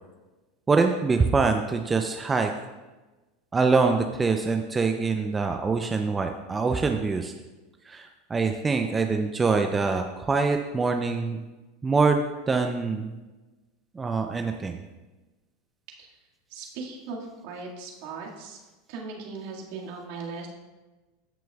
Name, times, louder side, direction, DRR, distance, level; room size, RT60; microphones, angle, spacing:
voice 1, 0.7-2.5 3.5-7.3 7.9-11.4 11.8-12.2 12.5-13.1 13.9-14.8, right 4 dB, 20° right, 5 dB, 0.6 m, -24 dB
voice 2, 16.5-17.2 17.4-18.6 18.9-20.5, right 4 dB, 65° right, -2 dB, 2.0 m, -38 dB
14.0 x 6.1 x 2.4 m, 1.2 s
hypercardioid pair, 90°, 0 cm